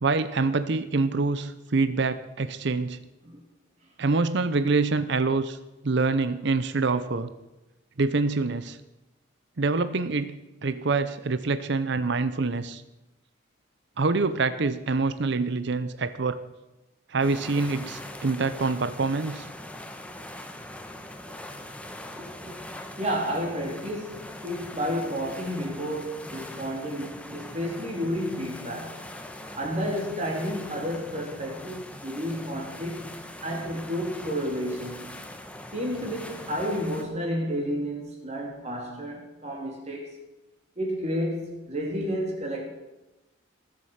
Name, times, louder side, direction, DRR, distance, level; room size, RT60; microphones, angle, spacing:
voice 1, 0.0-3.0 4.0-5.6 5.8-7.3 8.0-8.8 9.6-10.4 10.6-12.8 14.0-16.4 17.1-19.5, right 3 dB, 60° right, 0.7 m, -25 dB
sound 1, 17.2-37.0, left 1 dB, 5° left, 1.1 m, -42 dB
voice 2, 22.2-22.6 23.0-29.0 29.4-35.2 35.7-40.1 40.8-42.6, equal, 35° right, 3.5 m, -31 dB
20.0 x 7.7 x 5.7 m
head